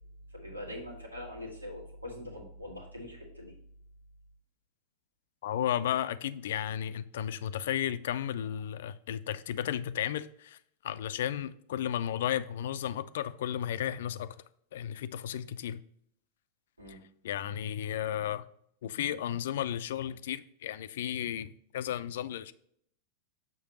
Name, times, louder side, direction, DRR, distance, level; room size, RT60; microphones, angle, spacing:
voice 1, 0.3-3.5 16.8-17.0, left 1 dB, 85° right, 2.1 m, -43 dB
voice 2, 5.4-10.6 10.8-14.4 14.7-15.8 17.2-18.4 18.8-22.5, left 10 dB, 60° left, 0.4 m, -33 dB
6.7 x 6.5 x 2.9 m
figure-of-eight pair, 90°, 0 cm